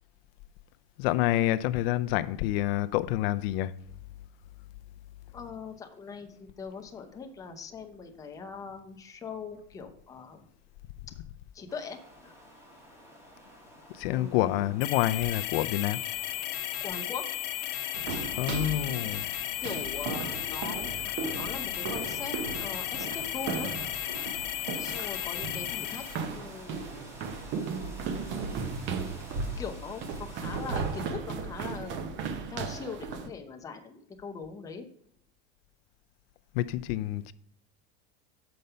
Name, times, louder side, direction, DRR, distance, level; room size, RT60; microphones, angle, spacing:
voice 1, 1.0-3.7 13.9-16.0 16.8-16.9 18.3-19.3 36.5-37.3, left 14 dB, 80° left, 0.5 m, -28 dB
voice 2, 5.3-10.5 11.5-12.3 14.1-14.7 16.8-17.3 19.6-21.1 21.4-23.7 24.8-27.1 28.1-28.8 29.6-34.9, left 5 dB, 10° left, 0.6 m, -41 dB
sound 1, 11.7-31.1, equal, 10° right, 1.2 m, -51 dB
sound 2, 14.8-26.2, left 14 dB, 60° left, 0.8 m, -34 dB
sound 3, 17.9-33.3, right 5 dB, 40° right, 0.7 m, -36 dB
6.8 x 5.2 x 5.6 m
cardioid pair, 170°, 29 cm